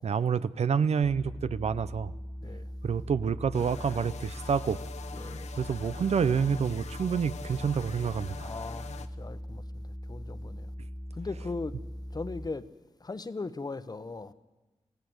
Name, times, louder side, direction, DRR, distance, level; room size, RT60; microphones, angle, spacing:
voice 1, 0.0-2.1 2.8-4.8 5.6-8.5, right 6 dB, 70° right, 0.7 m, -28 dB
sound 1, 1.0-12.5, equal, 10° left, 1.7 m, -40 dB
sound 2, 3.5-9.1, left 6 dB, 80° left, 1.1 m, -44 dB
voice 2, 5.1-5.5 8.4-10.7 11.1-11.8 12.1-12.6 13.0-14.3, left 3 dB, 35° left, 1.0 m, -39 dB
26.5 x 16.5 x 8.0 m
wide cardioid pair, 85°, 11 cm